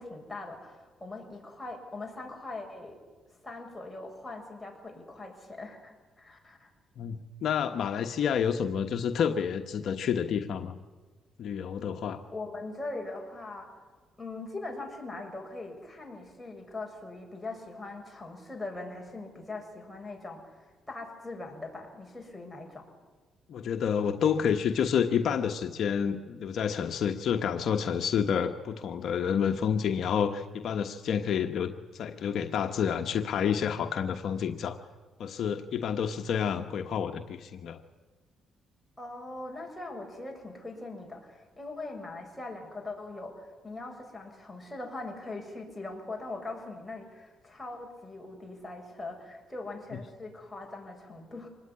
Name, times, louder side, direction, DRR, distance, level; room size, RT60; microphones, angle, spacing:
voice 1, 0.0-3.0 3.4-6.7 12.3-13.7 14.2-22.8 39.0-51.5, left 2 dB, 10° left, 1 dB, 7.0 m, -41 dB
voice 2, 7.0-10.8 11.4-12.2 23.5-34.8 35.2-37.8 49.9-50.0, left 7 dB, 65° left, 5 dB, 1.3 m, -29 dB
25.5 x 20.0 x 9.9 m, 1.4 s
cardioid pair, 90°, 0 cm